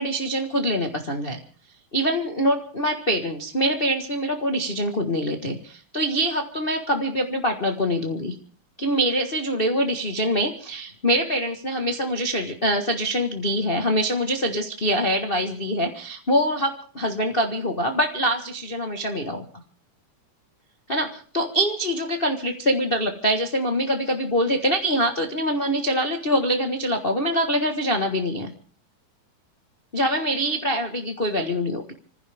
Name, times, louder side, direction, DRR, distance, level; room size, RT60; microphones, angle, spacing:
voice 1, 0.0-1.4 1.9-8.3 8.8-19.4 20.9-28.5 29.9-31.9, equal, 60° left, 4 dB, 0.5 m, -24 dB
26.5 x 15.5 x 3.6 m, 0.43 s
omnidirectional pair, 3.7 m